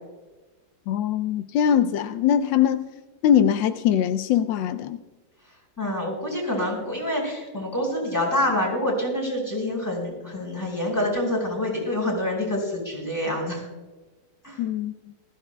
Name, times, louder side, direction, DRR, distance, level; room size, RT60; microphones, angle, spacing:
voice 1, 0.9-2.9 3.2-5.0 14.6-15.1, left 9 dB, 85° left, 9 dB, 1.3 m, -22 dB
voice 2, 5.8-13.6 14.4-14.6, left 1 dB, 10° left, -2 dB, 4.7 m, -26 dB
21.0 x 14.5 x 2.2 m, 1.2 s
omnidirectional pair, 2.0 m